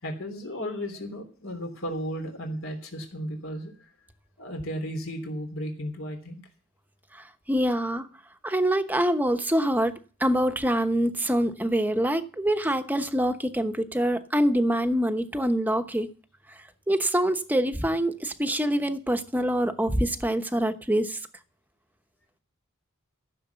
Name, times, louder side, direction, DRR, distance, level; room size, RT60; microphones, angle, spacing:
voice 1, 0.0-3.9 4.4-6.4, equal, 75° left, 3.2 m, -34 dB
voice 2, 7.5-8.1 8.4-9.9 10.2-16.1 16.9-21.2, right 1 dB, 10° right, 0.9 m, -25 dB
14.5 x 6.6 x 8.0 m
head